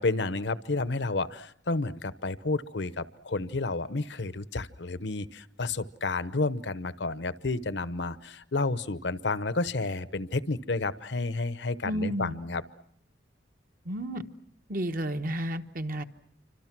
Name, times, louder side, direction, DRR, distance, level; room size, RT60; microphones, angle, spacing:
voice 1, 0.0-12.6, left 3 dB, 70° left, 15 dB, 0.9 m, -31 dB
voice 2, 11.8-12.3 13.8-14.2 14.7-16.0, equal, 50° right, 7 dB, 1.2 m, -31 dB
28.0 x 25.0 x 6.0 m, 0.67 s
head